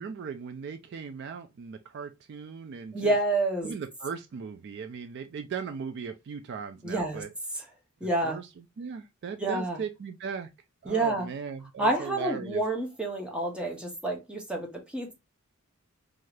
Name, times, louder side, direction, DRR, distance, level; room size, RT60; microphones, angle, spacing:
voice 1, 0.0-3.1 3.6-7.3 8.2-10.5 10.8-12.6, right 6 dB, 50° right, 0.3 m, -38 dB
voice 2, 2.9-3.7 6.8-7.2 7.5-7.6 8.0-8.4 9.4-9.8 10.9-11.3 11.8-15.1, right 2 dB, 5° right, 0.7 m, -28 dB
2.6 x 2.4 x 3.1 m
head